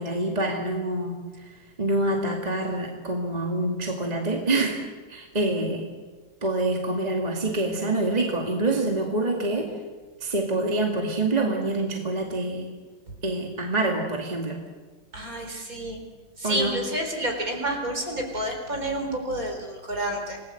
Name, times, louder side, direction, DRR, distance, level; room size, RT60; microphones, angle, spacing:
voice 1, 0.0-1.5 1.8-4.8 5.1-5.9 6.4-9.7 10.2-12.7 13.2-14.6 16.4-16.8, right 2 dB, 20° right, 1 dB, 2.3 m, -26 dB
voice 2, 15.1-16.0 16.4-20.4, right 1 dB, 40° right, 3 dB, 4.4 m, -29 dB
28.0 x 19.0 x 7.9 m, 1.4 s
omnidirectional pair, 2.3 m